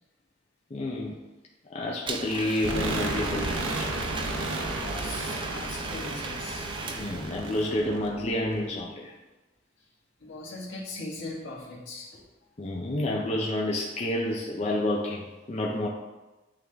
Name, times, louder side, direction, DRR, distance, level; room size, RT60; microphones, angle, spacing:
voice 1, 0.7-1.2 1.7-3.9 6.9-9.1 12.6-15.9, left 1 dB, 35° left, -2 dB, 0.5 m, -29 dB
Domestic sounds home sounds, 2.1-7.7, right 3 dB, 25° right, 0.4 m, -37 dB
sound 1, 2.6-8.7, right 2 dB, 90° right, 0.8 m, -33 dB
voice 2, 4.2-7.3 9.8-9.9 10.2-12.2, left 2 dB, 75° left, -4 dB, 1.6 m, -41 dB
8.4 x 3.6 x 3.4 m, 1.1 s
head